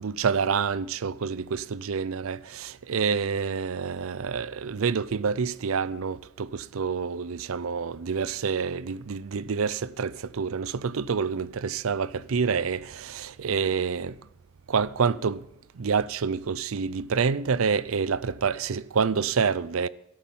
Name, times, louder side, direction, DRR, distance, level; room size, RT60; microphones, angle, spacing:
voice 1, 0.0-14.1 14.7-15.4 15.8-19.9, right 5 dB, 75° right, 0.5 m, -27 dB
13.5 x 11.5 x 5.5 m
head